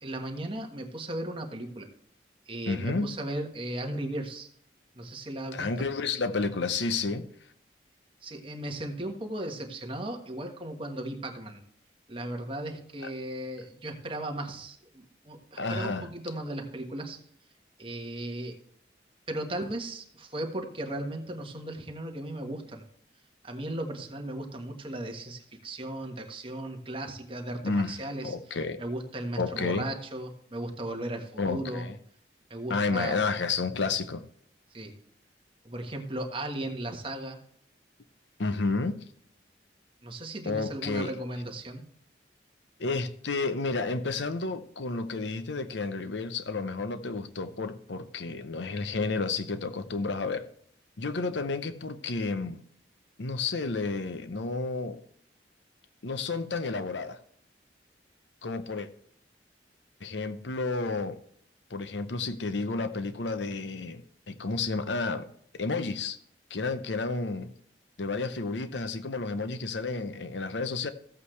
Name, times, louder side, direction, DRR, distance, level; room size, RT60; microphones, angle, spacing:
voice 1, 0.0-1.9 2.5-4.5 4.9-5.7 8.2-11.6 12.1-17.2 17.8-18.6 19.3-22.8 23.4-28.3 28.8-31.8 32.5-33.2 34.7-34.9 35.6-37.4 40.0-41.9, right 1 dB, 30° right, 1.4 m, -36 dB
voice 2, 2.7-3.1 5.5-7.3 13.0-13.1 15.6-16.1 27.6-28.0 28.2-28.8 29.4-29.9 31.4-32.0 32.7-34.2 38.4-39.0 40.5-41.1 42.8-50.5 51.0-52.6 53.2-55.0 56.0-57.2 58.4-58.9 60.0-61.2 61.7-65.3 65.5-66.2 66.5-67.5 68.0-70.9, left 3 dB, 80° left, 0.8 m, -31 dB
14.5 x 8.4 x 3.3 m
head